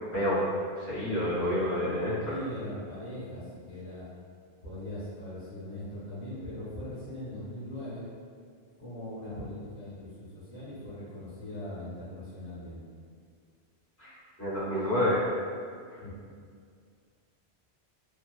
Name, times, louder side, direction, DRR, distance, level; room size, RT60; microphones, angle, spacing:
voice 1, 0.8-2.3 14.0-14.1 14.4-15.2 15.9-16.0, left 1 dB, 15° left, -12 dB, 0.9 m, -28 dB
voice 2, 2.2-4.1 4.6-8.0 8.8-12.8 16.0-16.2, left 1 dB, 55° left, -11 dB, 1.0 m, -40 dB
2.7 x 2.1 x 2.3 m, 2.1 s
omnidirectional pair, 1.1 m